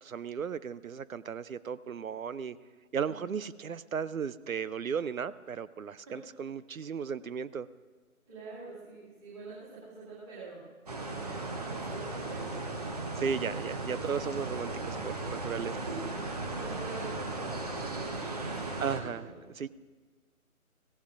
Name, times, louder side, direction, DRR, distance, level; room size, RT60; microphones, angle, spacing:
voice 1, 0.0-2.6 2.9-7.7 13.2-15.7 18.8-19.3 19.6-19.7, right 6 dB, 70° right, 17 dB, 0.6 m, -35 dB
voice 2, 3.1-3.5 6.0-6.2 8.3-10.6 11.1-12.9 15.7-19.3, right 3 dB, 10° right, -11 dB, 2.4 m, -46 dB
sound 1, 10.9-19.0, right 2 dB, 25° right, 1.0 m, -36 dB
22.0 x 16.5 x 2.5 m, 1.4 s
figure-of-eight pair, 155°, 44 cm